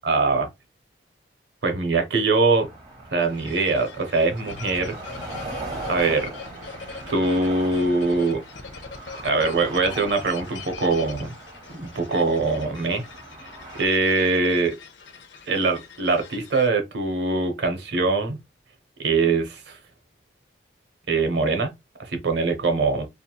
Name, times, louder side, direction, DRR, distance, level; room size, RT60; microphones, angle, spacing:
voice 1, 0.0-0.5 1.6-2.7 3.1-4.9 5.9-6.3 7.1-8.4 9.2-11.3 11.7-13.1 13.8-14.7 15.5-18.4 19.0-19.8 21.1-21.7 22.1-23.1, right 3 dB, 70° right, 0.7 m, -22 dB
sound 1, 2.6-13.9, right 2 dB, 20° right, 1.0 m, -40 dB
sound 2, 3.2-16.7, left 5 dB, 75° left, 0.6 m, -42 dB
2.9 x 2.6 x 2.2 m
head